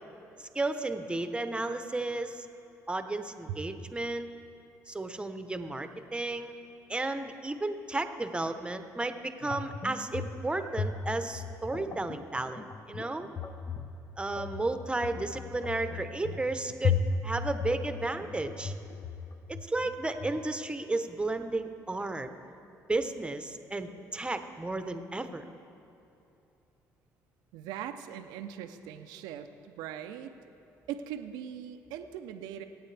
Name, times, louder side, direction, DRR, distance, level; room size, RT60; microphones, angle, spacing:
voice 1, 0.4-2.5 2.9-4.3 4.9-6.5 6.9-12.6 12.9-13.3 14.2-18.7 19.5-22.3 22.9-25.4, right 2 dB, 15° right, 8 dB, 1.0 m, -33 dB
sound 1, 9.4-20.4, left 5 dB, 40° left, 0.9 m, -36 dB
voice 2, 27.5-30.3 30.9-32.6, right 10 dB, 85° right, 7 dB, 0.6 m, -40 dB
24.5 x 8.9 x 3.4 m, 2.9 s
supercardioid pair, 70°, 7 cm